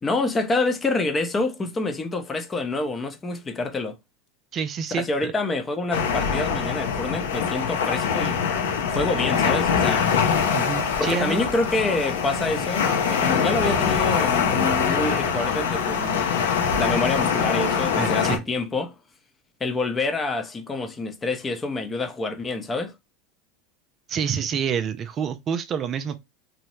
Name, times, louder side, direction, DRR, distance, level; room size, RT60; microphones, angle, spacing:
voice 1, 0.0-4.0 4.9-8.4 8.9-10.1 11.0-16.3 16.8-18.9 19.6-22.9, left 3 dB, 20° left, 0.6 m, -27 dB
voice 2, 4.5-5.3 10.5-11.4 18.0-18.4 24.1-26.2, right 7 dB, 40° right, 0.3 m, -28 dB
sound 1, 5.9-18.4, left 6 dB, 80° left, 0.6 m, -23 dB
2.7 x 2.0 x 3.0 m
hypercardioid pair, 95°, 0 cm